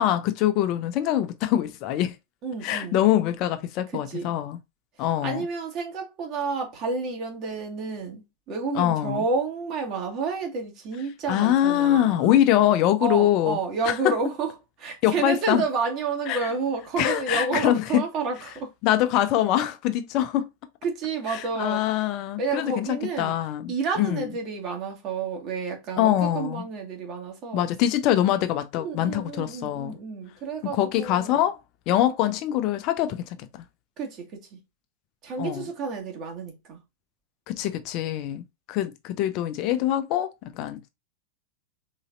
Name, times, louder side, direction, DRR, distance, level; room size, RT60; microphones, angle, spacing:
voice 1, 0.0-2.1 2.6-4.6 5.0-5.4 8.8-9.2 11.3-13.6 13.8-13.9 15.0-15.6 16.3-16.5 17.0-18.0 18.8-20.5 21.3-24.3 26.0-26.6 27.5-30.0 30.7-31.6 31.9-33.5 35.4-35.7 37.5-40.9, left 12 dB, 40° left, 0.5 m, -24 dB
voice 2, 2.4-3.0 3.9-4.3 5.0-12.4 13.0-18.7 20.8-21.8 22.4-23.3 23.7-27.6 28.7-31.4 34.0-34.6 35.2-36.8, right 4 dB, 35° right, 1.7 m, -30 dB
4.0 x 4.0 x 2.5 m
figure-of-eight pair, 90°, 0 cm